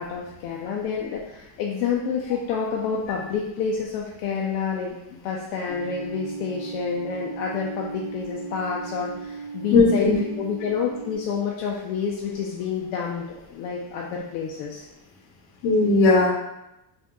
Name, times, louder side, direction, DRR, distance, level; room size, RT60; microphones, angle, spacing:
voice 1, 0.0-14.9, left 6 dB, 80° left, -2 dB, 0.6 m, -29 dB
sound 1, 5.7-11.2, right 5 dB, 25° left, 0.7 m, -37 dB
voice 2, 9.7-10.1 15.6-16.3, left 3 dB, 60° left, 0 dB, 0.9 m, -17 dB
3.6 x 2.6 x 2.2 m, 0.89 s
supercardioid pair, 115°, 50 cm